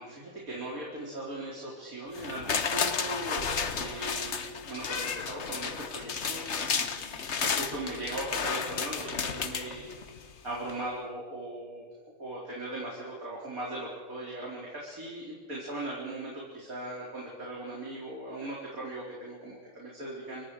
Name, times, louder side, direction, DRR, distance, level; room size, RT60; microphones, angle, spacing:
voice 1, 0.0-9.9 10.4-11.9 12.2-20.5, right 1 dB, 85° right, -4 dB, 4.9 m, -39 dB
sound 1, 2.1-10.3 10.7-10.8, left 6 dB, 55° left, 1.5 m, -32 dB
29.5 x 24.0 x 5.0 m, 1.5 s
omnidirectional pair, 1.4 m